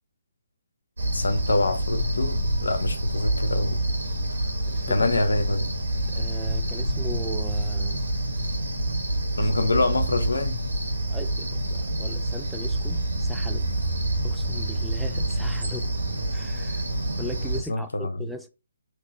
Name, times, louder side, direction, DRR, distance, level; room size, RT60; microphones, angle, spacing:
Cricket, 1.0-17.6, right 1 dB, 75° right, 1.8 m, -27 dB
voice 1, 1.1-3.8 4.9-5.7 9.4-10.5 17.7-18.3, left 2 dB, 75° left, 0.9 m, -25 dB
voice 2, 6.1-8.0 11.1-11.5 12.0-13.7 14.2-15.9 16.3-16.8 17.2-18.5, equal, ahead, 0.3 m, -38 dB
3.8 x 3.0 x 3.1 m
figure-of-eight pair, 140°, 0 cm